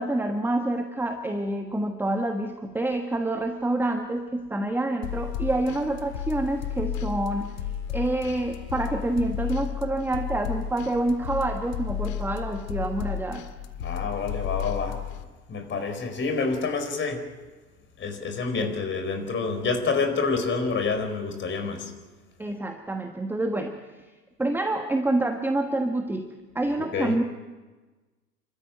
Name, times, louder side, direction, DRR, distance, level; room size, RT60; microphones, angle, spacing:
voice 1, 0.0-7.5 7.9-13.4 18.6-18.7 22.4-23.8 24.4-27.2, right 2 dB, 5° right, 5 dB, 1.3 m, -27 dB
sound 1, 5.0-15.2, left 9 dB, 50° left, 2.0 m, -33 dB
voice 2, 13.8-15.0 15.5-17.2 18.0-21.9 26.8-27.2, left 4 dB, 25° left, 7 dB, 4.6 m, -28 dB
29.5 x 13.5 x 9.3 m, 1.2 s
figure-of-eight pair, 90°, 49 cm